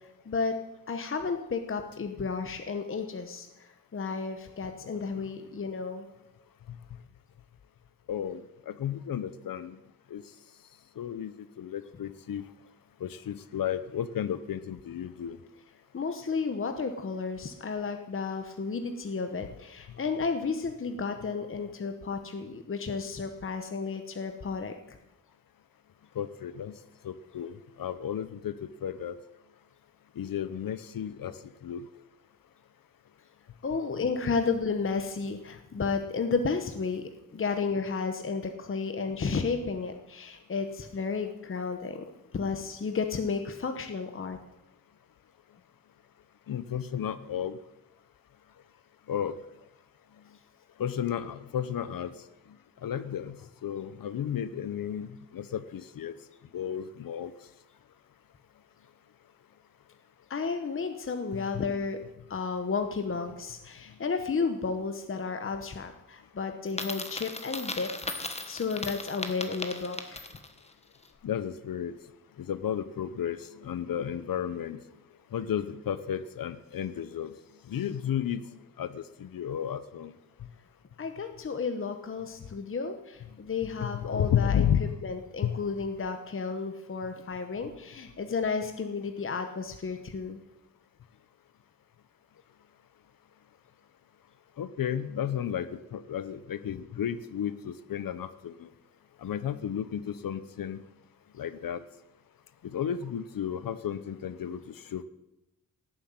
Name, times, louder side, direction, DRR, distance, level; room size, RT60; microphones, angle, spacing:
voice 1, 0.3-0.6 0.9-6.1 15.9-25.0 33.6-42.0 42.3-44.4 60.3-62.0 62.3-67.9 68.2-70.3 81.0-84.7 85.0-90.4, left 4 dB, 40° left, 7 dB, 1.0 m, -32 dB
voice 2, 8.1-8.4 8.7-9.8 10.1-10.2 11.0-12.4 13.0-15.4 26.1-26.8 27.0-29.1 30.2-31.8 46.5-47.6 49.1-49.4 50.8-52.3 52.8-56.1 56.5-57.3 61.3-61.6 71.2-72.0 72.4-74.8 75.3-77.4 77.7-78.4 78.8-80.1 83.8-84.9 85.4-85.5 94.6-98.7 99.2-100.8 101.3-101.8 102.6-105.0, left 9 dB, 80° left, 13 dB, 0.8 m, -33 dB
Coin (dropping), 66.7-70.6, left 2 dB, 20° left, 1.3 m, -37 dB
17.5 x 7.9 x 9.5 m, 0.94 s
wide cardioid pair, 160°, 34 cm